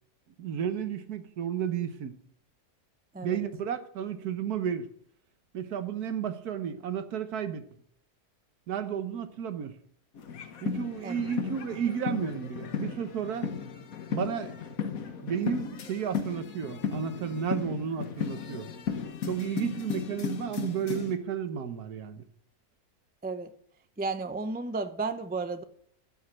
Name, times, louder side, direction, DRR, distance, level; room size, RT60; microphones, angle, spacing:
voice 1, 0.4-2.2 3.2-4.9 5.5-7.7 8.7-9.8 10.6-13.5 14.1-14.5 15.2-18.7 19.3-22.2, right 8 dB, 80° right, 1.5 m, -32 dB
sound 1, 10.1-21.2, left 6 dB, 65° left, 1.4 m, -35 dB
voice 2, 24.0-25.6, right 3 dB, 15° right, 0.3 m, -33 dB
12.5 x 5.6 x 7.6 m
omnidirectional pair, 1.6 m